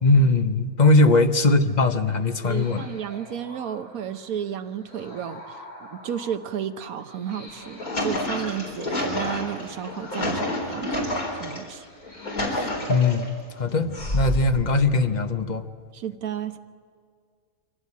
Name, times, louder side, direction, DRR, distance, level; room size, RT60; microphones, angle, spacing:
voice 1, 0.0-2.8 12.9-13.3 13.6-15.6, left 2 dB, 35° left, 8 dB, 0.9 m, -20 dB
sound 1, 1.6-12.3, left 1 dB, 65° left, 8.6 m, -47 dB
voice 2, 2.4-11.8 15.9-16.6, right 9 dB, 75° right, 9 dB, 1.4 m, -33 dB
sound 2, 7.5-11.6 12.0-13.3 13.9-14.6, left 1 dB, 80° left, 4.5 m, -28 dB
24.0 x 16.0 x 8.5 m, 2.1 s
omnidirectional pair, 1.5 m